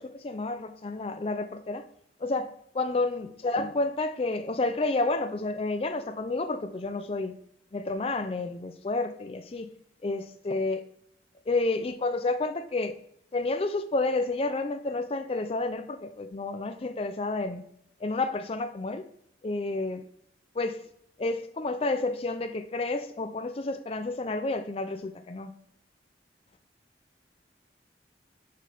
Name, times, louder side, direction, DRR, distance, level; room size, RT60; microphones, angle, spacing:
voice 1, 0.0-1.8 2.2-7.3 7.7-9.7 10.0-10.8 11.5-12.9 13.3-17.6 18.0-19.0 19.4-20.0 20.5-20.8 21.2-25.5, left 2 dB, 35° left, 0.4 m, -30 dB
6.6 x 5.4 x 3.3 m
head